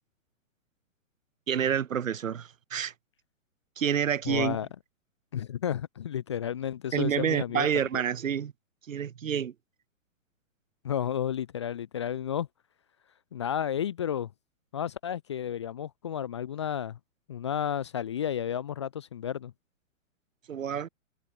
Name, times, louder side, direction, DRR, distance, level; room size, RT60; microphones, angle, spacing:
voice 1, 1.5-2.9 3.8-4.6 6.9-8.5 8.9-9.5 20.5-20.9, right 8 dB, 70° right, 2.5 m, -28 dB
voice 2, 4.2-4.7 5.3-7.7 7.9-8.0 10.8-12.5 13.3-14.3 14.7-17.0 17.3-19.5, left 9 dB, 20° left, 0.8 m, -32 dB
hypercardioid pair, 175°, 40 cm